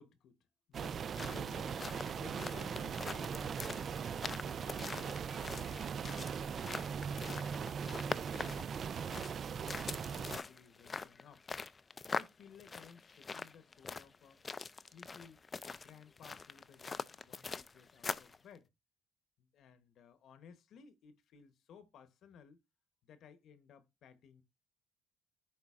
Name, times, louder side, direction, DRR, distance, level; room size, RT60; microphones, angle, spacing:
voice 1, 0.0-1.9 2.2-4.0 4.3-6.0 6.4-9.4 9.7-11.4 12.1-14.4 14.8-18.7 19.4-22.6 23.0-24.4, left 7 dB, 65° left, 0.9 m, -58 dB
sound 1, 0.7-10.4, right 7 dB, 45° right, 0.3 m, -40 dB
sound 2, 1.0-18.4, left 4 dB, 30° left, 0.4 m, -44 dB
11.0 x 3.8 x 2.4 m
supercardioid pair, 90°, 0 cm